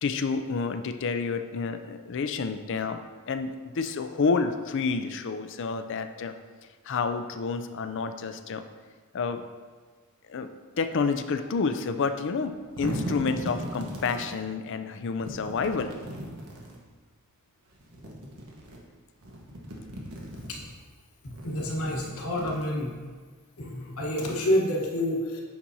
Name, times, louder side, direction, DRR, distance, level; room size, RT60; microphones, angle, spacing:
voice 1, 0.0-6.3 6.8-8.6 9.1-9.4 10.3-15.9, left 4 dB, 55° left, 8 dB, 0.4 m, -29 dB
sound 1, 12.4-14.4 15.2-16.8 17.7-18.8 19.2-20.7 21.2-23.0, right 1 dB, 85° right, 1.2 m, -38 dB
voice 2, 21.4-23.0 23.6-25.4, left 1 dB, 75° left, 0 dB, 1.2 m, -28 dB
8.5 x 5.9 x 2.7 m, 1.5 s
head